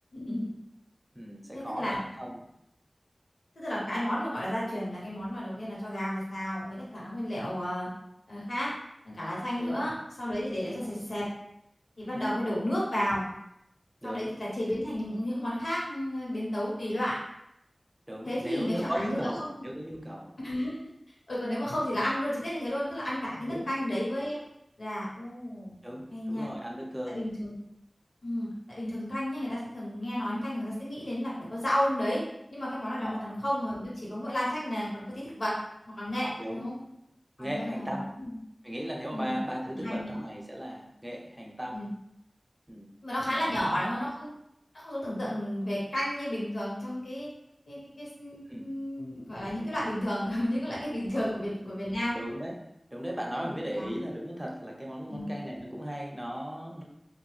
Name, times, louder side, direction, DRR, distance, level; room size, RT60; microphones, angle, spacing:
voice 1, 0.1-0.5 1.5-2.0 3.6-7.9 8.3-8.7 9.0-11.3 12.0-13.2 14.0-17.2 18.2-19.5 20.4-20.7 21.3-24.4 24.8-25.8 26.1-26.5 27.1-27.5 28.2-32.2 32.5-35.5 36.0-36.7 37.4-38.3 39.1-39.4 39.7-40.2 41.7-41.9 43.0-44.3 44.8-47.3 47.7-52.2 53.4-54.0 55.1-55.3, equal, 90° left, -7 dB, 1.1 m, -32 dB
voice 2, 1.1-2.5 7.4-7.6 9.6-9.8 10.6-10.9 12.1-12.3 14.0-14.3 18.1-20.3 23.5-23.7 25.8-27.2 33.0-33.3 36.4-36.7 37.4-38.1 38.6-41.8 42.7-42.9 43.3-44.0 48.5-48.7 51.1-51.5 52.1-56.8, equal, 20° right, -1 dB, 0.7 m, -37 dB
2.7 x 2.2 x 3.2 m, 0.80 s
wide cardioid pair, 50°, 0 cm